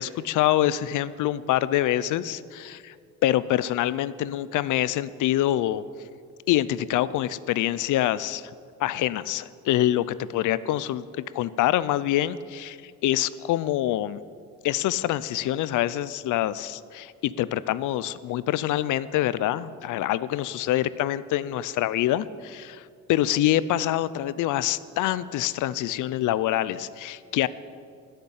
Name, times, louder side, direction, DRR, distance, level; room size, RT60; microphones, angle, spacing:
voice 1, 0.0-2.9 3.2-5.8 6.5-8.5 8.8-14.2 14.6-27.5, left 13 dB, 80° left, 17 dB, 0.5 m, -25 dB
13.0 x 6.8 x 9.7 m, 2.2 s
cardioid pair, 90°, 30 cm